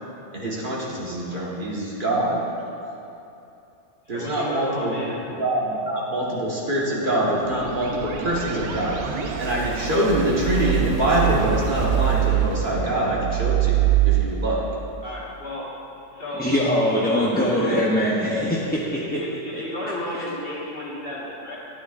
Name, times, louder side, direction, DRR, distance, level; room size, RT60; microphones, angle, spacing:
voice 1, 0.3-2.4 4.1-5.0 5.4-9.0 9.4-14.6, right 1 dB, 45° right, -5 dB, 1.7 m, -24 dB
voice 2, 4.1-5.2 15.0-15.7 16.1-16.5 17.0-17.9 19.1-19.3 19.6-21.6, left 1 dB, 55° left, -6 dB, 1.8 m, -32 dB
sound 1, 7.4-14.2, right 12 dB, 70° right, 1.0 m, -24 dB
voice 3, 16.4-19.2 19.5-19.6 20.1-20.2, equal, 10° left, -7 dB, 0.6 m, -22 dB
12.5 x 9.5 x 2.5 m, 2.8 s
omnidirectional pair, 1.2 m